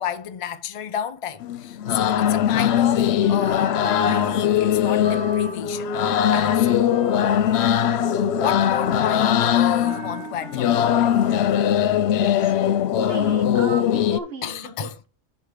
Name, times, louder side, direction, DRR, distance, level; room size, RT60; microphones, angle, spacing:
voice 1, 0.0-5.9 6.3-6.8 7.5-7.7 8.4-11.1 14.4-15.0, left 9 dB, 40° left, 0.5 m, -31 dB
sound 1, 1.4-14.2, left 10 dB, 60° left, 0.8 m, -20 dB
sound 2, 2.6-12.2, right 2 dB, 5° left, 3.0 m, -37 dB
voice 2, 12.1-12.5 13.0-15.1, right 5 dB, 50° right, 1.3 m, -36 dB
7.3 x 4.8 x 5.0 m
omnidirectional pair, 1.4 m